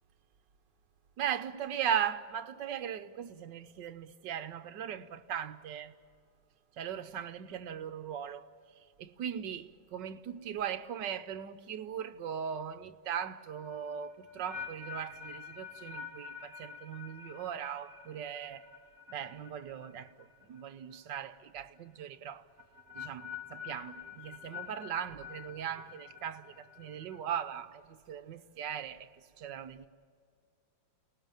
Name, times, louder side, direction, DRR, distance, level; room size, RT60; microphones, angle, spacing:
voice 1, 1.2-5.9 6.8-8.5 9.0-18.7 19.1-22.5 22.9-29.1 29.4-29.9, right 9 dB, 70° right, 1.5 m, -38 dB
sound 1, 13.6-20.7 20.9-21.4 22.6-27.2, left 7 dB, 50° right, 1.8 m, -47 dB
29.5 x 19.5 x 9.1 m
omnidirectional pair, 2.1 m